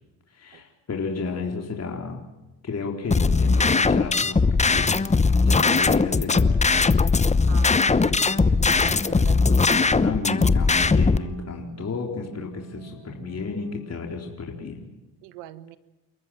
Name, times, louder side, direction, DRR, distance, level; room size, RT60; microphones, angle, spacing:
voice 1, 0.3-2.2 2.6-5.0 5.4-6.7 10.0-14.8, left 4 dB, 35° left, 2 dB, 4.0 m, -32 dB
sound 1, 3.1-11.2, left 4 dB, 15° left, 0.9 m, -20 dB
voice 2, 7.5-10.0 15.2-15.8, right 13 dB, 90° right, 14 dB, 1.6 m, -42 dB
Processed Synth Chord Progression, 7.8-13.8, right 4 dB, 50° right, 6.1 m, -45 dB
29.0 x 14.0 x 9.2 m, 0.99 s
supercardioid pair, 85°, 43 cm